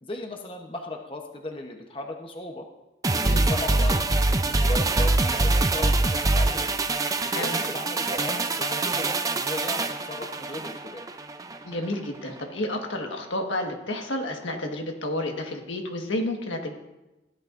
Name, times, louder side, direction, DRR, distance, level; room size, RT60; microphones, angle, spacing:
voice 1, 0.0-2.7 3.1-6.7 7.4-11.0, left 2 dB, 30° left, 2 dB, 0.9 m, -37 dB
sound 1, 3.0-11.6 11.9-12.0, right 2 dB, 20° right, 0.4 m, -24 dB
voice 2, 11.6-16.8, left 1 dB, 90° left, 2 dB, 1.6 m, -30 dB
16.0 x 11.0 x 2.6 m, 1.0 s
head